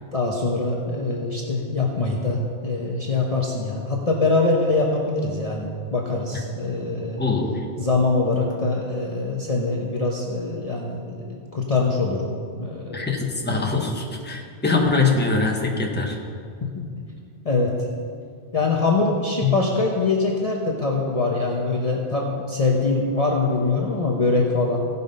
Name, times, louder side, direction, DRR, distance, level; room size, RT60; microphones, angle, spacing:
voice 1, 0.1-7.2 7.8-12.3 12.6-13.1 13.5-13.6 14.3-14.4 16.6-16.9 17.4-17.7 18.5-24.9, left 3 dB, 35° left, -2 dB, 1.0 m, -23 dB
voice 2, 7.2-7.6 12.9-16.2 19.4-19.6, left 4 dB, 10° left, 0 dB, 1.1 m, -23 dB
16.5 x 5.5 x 5.3 m, 2.2 s
omnidirectional pair, 1.1 m